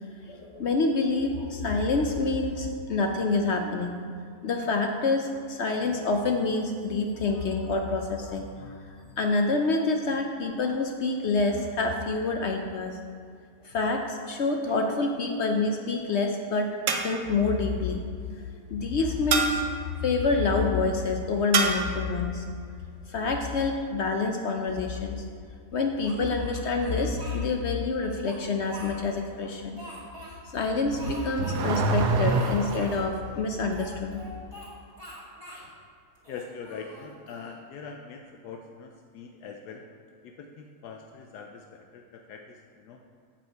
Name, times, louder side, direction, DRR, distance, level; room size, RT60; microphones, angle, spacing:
voice 1, 0.3-3.9 4.4-8.8 9.2-13.0 13.6-16.7 17.0-18.1 18.4-22.4 23.1-25.2 25.7-29.8 30.5-34.2, left 3 dB, 60° left, 3 dB, 0.7 m, -27 dB
sound 1, 14.7-15.2 16.9-17.4 19.3-19.8 21.5-22.0, right 5 dB, 60° right, 1.0 m, -27 dB
Speech, 26.0-27.4 28.0-29.3 29.8-30.4 31.0-31.6 31.9-32.0 32.2-33.0 33.7-34.7 35.0-35.7 36.2-37.5, right 1 dB, 20° right, 2.0 m, -44 dB
Car / Accelerating revving vroom, 30.8-33.1, right 3 dB, 90° right, 1.2 m, -26 dB
voice 2, 36.3-39.8 40.2-43.0, left 5 dB, 80° left, 3 dB, 1.2 m, -43 dB
8.0 x 7.4 x 4.6 m, 2.2 s
omnidirectional pair, 1.7 m